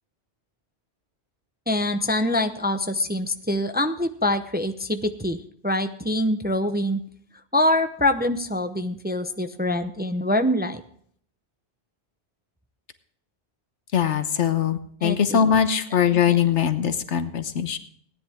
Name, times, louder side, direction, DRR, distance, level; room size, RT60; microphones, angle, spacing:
voice 1, 1.7-7.0 7.5-10.8 15.0-15.4 15.9-16.5, left 1 dB, 10° right, 7 dB, 0.6 m, -25 dB
voice 2, 13.9-17.8, left 8 dB, 85° left, 10 dB, 1.3 m, -22 dB
17.5 x 10.5 x 3.5 m, 0.62 s
omnidirectional pair, 1.2 m